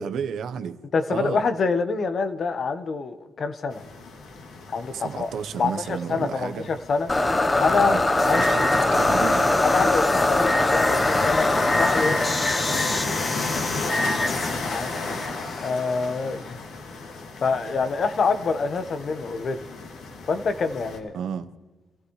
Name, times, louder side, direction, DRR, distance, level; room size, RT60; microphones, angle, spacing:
voice 1, 0.0-0.8 1.1-1.4 4.9-6.7 7.8-9.5 11.0-11.2 21.1-21.5, right 7 dB, 70° right, 1.0 m, -32 dB
voice 2, 0.9-3.8 4.7-5.3 5.6-7.1 7.6-8.7 9.6-11.5 11.8-12.2 14.6-14.9 15.6-16.6 16.9-17.0 17.4-19.6 20.3-21.1, left 4 dB, 50° left, 1.3 m, -26 dB
sound 1, 3.7-21.0, left 3 dB, 75° left, 2.8 m, -34 dB
sound 2, 7.1-16.1, left 2 dB, 20° left, 1.0 m, -23 dB
26.0 x 15.0 x 3.3 m
cardioid pair, 90°, 0 cm